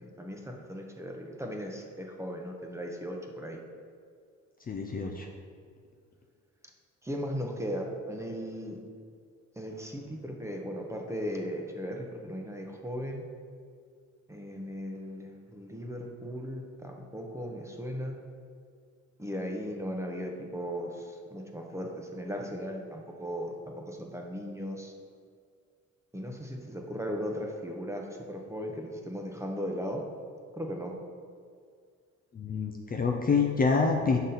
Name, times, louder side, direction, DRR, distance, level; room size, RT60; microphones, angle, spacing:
voice 1, 0.0-3.6 7.0-8.8 9.6-13.2 14.3-18.2 19.2-24.9 26.1-30.0 30.6-31.0, equal, 10° right, 1 dB, 0.8 m, -37 dB
voice 2, 4.7-5.3 32.3-34.2, left 4 dB, 30° left, 2 dB, 0.5 m, -27 dB
6.1 x 4.0 x 4.1 m, 2.1 s
cardioid pair, 90°, 30 cm